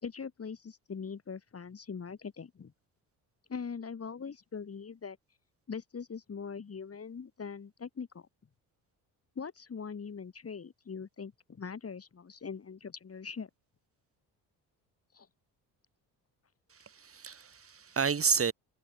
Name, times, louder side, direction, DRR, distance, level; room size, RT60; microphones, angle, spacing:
voice 1, 0.0-2.7 3.5-5.2 5.7-8.3 9.3-13.5 15.1-15.3, left 6 dB, 35° left, 3.4 m, -42 dB
voice 2, 16.7-18.5, right 6 dB, 35° right, 2.3 m, -30 dB
supercardioid pair, 80°, 40 cm